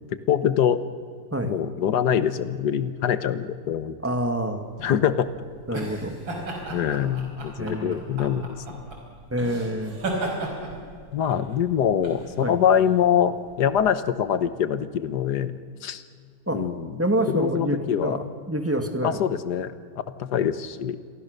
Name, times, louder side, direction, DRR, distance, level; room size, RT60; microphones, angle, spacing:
voice 1, 0.3-0.8 1.4-4.0 4.8-5.3 5.7-5.8 6.6-8.6 11.1-16.0 16.5-17.0 17.3-18.2 19.0-19.7 20.2-21.0, left 9 dB, 60° left, 13 dB, 1.6 m, -24 dB
voice 2, 4.0-4.7 5.7-6.2 7.6-8.0 9.3-10.0 11.3-11.4 12.4-12.6 16.5-16.7 17.0-18.2 18.5-19.2, right 1 dB, 5° right, 5 dB, 2.0 m, -27 dB
sound 1, 4.7-13.9, right 2 dB, 90° right, 5.7 m, -35 dB
29.0 x 23.0 x 6.7 m, 2.1 s
omnidirectional pair, 2.1 m